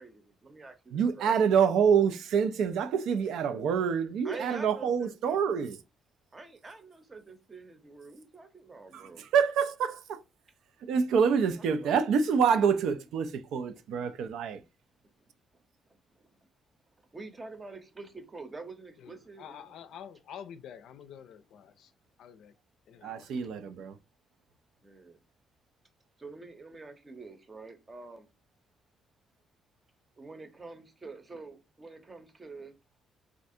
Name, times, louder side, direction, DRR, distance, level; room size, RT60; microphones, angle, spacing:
voice 1, 0.0-1.4 4.2-5.5 6.3-9.3 11.3-12.0 13.7-13.8 15.5-16.3 17.1-19.7 23.3-23.5 24.8-25.2 26.2-28.3 30.2-32.7, right 3 dB, 30° right, 0.7 m, -47 dB
voice 2, 0.9-5.8 8.9-10.2 10.8-14.6 23.0-24.0, right 6 dB, 80° right, 0.3 m, -26 dB
voice 3, 19.0-21.9 22.2-22.5 22.9-23.3, left 8 dB, 80° left, 0.4 m, -48 dB
3.3 x 2.5 x 2.6 m
cardioid pair, 90°, 0 cm